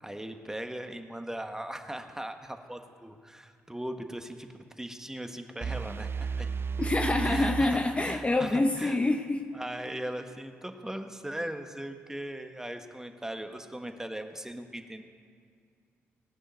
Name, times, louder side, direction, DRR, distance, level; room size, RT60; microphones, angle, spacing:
voice 1, 0.0-4.5 4.8-6.5 7.2-9.0 9.5-15.0, right 1 dB, 10° right, 6 dB, 1.5 m, -39 dB
sound 1, 5.6-8.5, right 5 dB, 45° right, 0.5 m, -34 dB
voice 2, 6.8-9.5, left 2 dB, 20° left, 6 dB, 0.8 m, -26 dB
18.5 x 6.2 x 9.3 m, 2.2 s
supercardioid pair, 50°, 6 cm